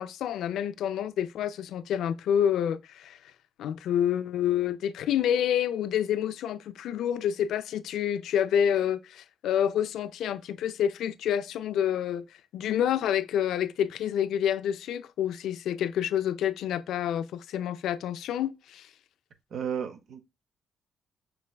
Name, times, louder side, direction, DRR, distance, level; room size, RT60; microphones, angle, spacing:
voice 1, 0.0-3.2 3.6-12.2 12.5-18.9, left 9 dB, 85° left, 0.4 m, -28 dB
voice 2, 19.5-20.2, right 7 dB, 60° right, 0.7 m, -33 dB
5.9 x 3.3 x 2.2 m
cardioid pair, 135°, 0 cm